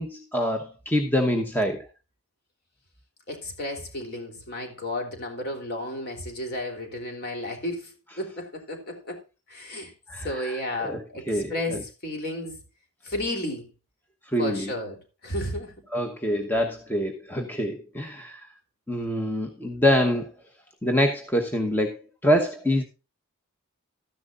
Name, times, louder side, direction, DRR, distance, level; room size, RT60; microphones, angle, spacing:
voice 1, 0.0-1.9 10.1-11.8 14.3-14.7 15.9-18.5 18.9-20.3 20.8-22.0 22.2-22.8, equal, 10° left, 1.0 m, -25 dB
voice 2, 3.3-9.2 9.5-12.6 13.0-13.7 14.4-15.7, left 1 dB, 45° left, 3.3 m, -33 dB
13.5 x 10.5 x 2.5 m
head